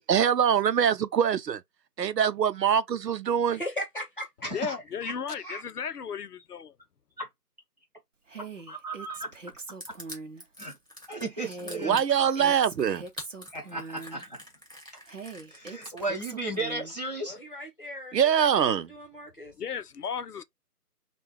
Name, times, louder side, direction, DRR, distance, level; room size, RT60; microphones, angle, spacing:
voice 1, 0.0-1.6 2.0-3.6 11.8-13.1 18.1-18.9, right 8 dB, 90° right, 0.6 m, -24 dB
voice 2, 3.5-4.8 5.0-5.6 17.2-19.5, equal, 35° left, 1.0 m, -39 dB
voice 3, 4.5-6.7 19.6-20.4, left 7 dB, 70° left, 0.6 m, -34 dB
Female speech woman speaking, 8.3-10.4 11.3-14.2 15.1-17.0, right 3 dB, 50° right, 0.7 m, -42 dB
voice 4, 8.7-9.3 10.6-10.7 11.1-12.0 13.5-14.4 15.5-17.4, right 2 dB, 25° right, 1.0 m, -34 dB
Crushing, 9.8-16.5, left 1 dB, 5° right, 1.4 m, -45 dB
3.6 x 2.3 x 4.4 m
figure-of-eight pair, 170°, 48 cm